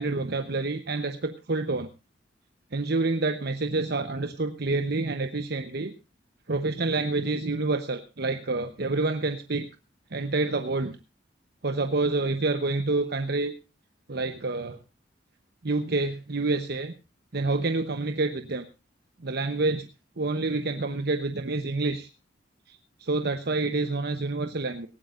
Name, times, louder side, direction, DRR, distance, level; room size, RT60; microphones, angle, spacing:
voice 1, 0.0-1.9 2.7-5.9 6.5-9.7 10.1-11.0 11.6-13.5 14.1-14.8 15.6-16.9 17.3-18.7 19.2-19.9 20.2-22.1 22.7-24.9, right 3 dB, 60° right, 8 dB, 1.0 m, -28 dB
18.5 x 17.0 x 2.6 m, 0.29 s
head